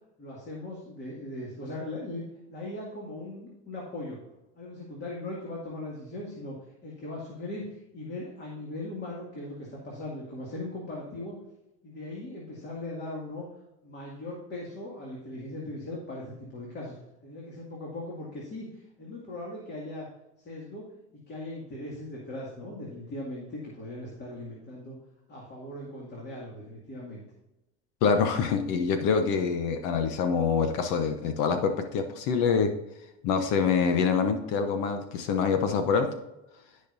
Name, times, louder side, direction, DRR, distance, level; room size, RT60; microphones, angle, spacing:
voice 1, 0.2-2.2 2.5-4.2 4.6-6.6 6.8-11.4 11.8-13.5 13.8-17.0 17.2-20.1 20.4-20.9 21.1-25.0 25.3-27.2, left 2 dB, 30° left, -4 dB, 2.3 m, -39 dB
voice 2, 28.0-32.7 33.2-36.1, left 5 dB, 65° left, 7 dB, 1.1 m, -25 dB
14.5 x 5.3 x 2.7 m, 0.94 s
supercardioid pair, 130°, 34 cm